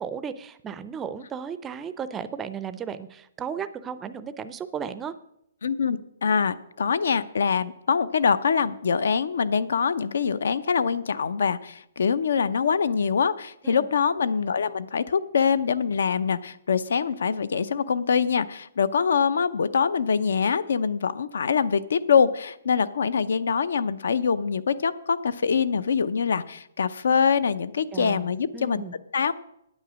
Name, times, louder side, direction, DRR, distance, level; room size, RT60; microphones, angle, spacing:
voice 1, 0.0-5.1 13.6-13.9 27.9-28.9, right 7 dB, 10° right, 13 dB, 0.4 m, -35 dB
voice 2, 5.6-28.8 29.1-29.3, left 6 dB, 80° left, 16 dB, 0.6 m, -24 dB
9.5 x 8.9 x 6.2 m, 0.78 s
hypercardioid pair, 165°, 0 cm